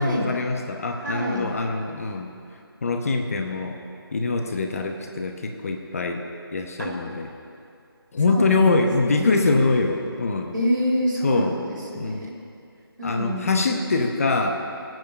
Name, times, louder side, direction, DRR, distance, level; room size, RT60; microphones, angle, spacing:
voice 1, 0.0-2.3 2.8-3.8 4.1-6.2 6.5-7.3 8.1-10.5 11.2-11.5 12.0-12.2 13.0-14.5, left 3 dB, 35° left, 3 dB, 1.0 m, -23 dB
voice 2, 1.0-1.5 6.8-6.9 8.3-9.6 10.5-12.3 13.0-13.6, equal, 55° right, -2 dB, 3.4 m, -27 dB
18.5 x 9.3 x 5.5 m, 2.5 s
figure-of-eight pair, 165°, 13 cm